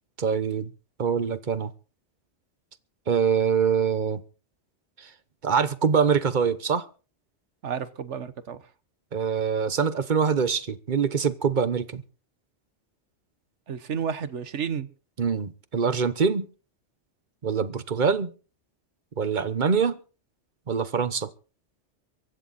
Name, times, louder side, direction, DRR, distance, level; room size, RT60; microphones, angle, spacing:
voice 1, 0.2-0.7 1.0-1.7 3.1-4.2 5.0-5.1 5.4-6.9 9.1-12.0 15.2-16.5 17.4-18.3 19.2-20.0 20.7-21.3, right 6 dB, 45° right, 1.2 m, -24 dB
voice 2, 7.6-8.6 13.7-14.9, right 7 dB, 85° right, 1.5 m, -31 dB
24.0 x 10.0 x 4.2 m
omnidirectional pair, 1.2 m